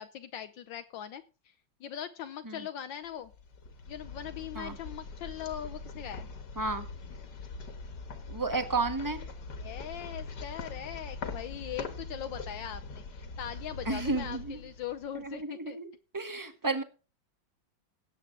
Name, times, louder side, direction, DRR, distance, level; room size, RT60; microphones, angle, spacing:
voice 1, 0.0-1.5 1.8-3.3 3.9-6.3 9.5-15.8 16.3-16.5, left 10 dB, 75° left, 9 dB, 1.4 m, -41 dB
sound 1, 3.2-15.3, left 3 dB, 60° left, 2.0 m, -42 dB
voice 2, 8.3-9.2 13.8-14.6 15.2-15.9 16.1-16.8, right 3 dB, 10° right, 8 dB, 1.2 m, -32 dB
17.5 x 7.9 x 3.7 m, 0.33 s
omnidirectional pair, 2.1 m